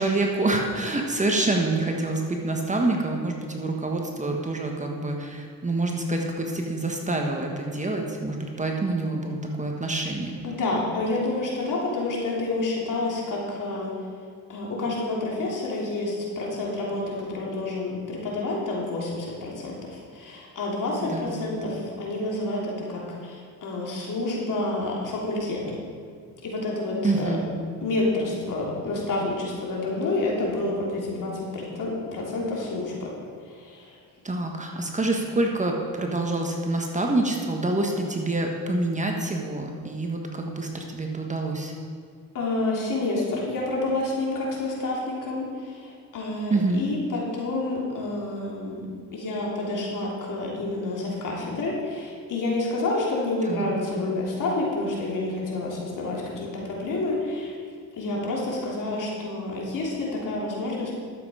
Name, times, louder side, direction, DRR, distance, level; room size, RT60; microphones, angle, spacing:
voice 1, 0.0-10.4 21.0-21.3 27.0-27.5 34.2-41.7 46.5-46.8 53.4-53.7, right 2 dB, 20° right, 1 dB, 1.4 m, -27 dB
voice 2, 10.4-13.9 14.5-25.8 26.4-27.3 27.8-33.1 33.4-34.0 42.3-48.9 49.1-57.5 57.9-60.9, left 2 dB, 60° left, -3 dB, 3.1 m, -29 dB
12.0 x 7.7 x 5.0 m, 2.1 s
cardioid pair, 95°, 36 cm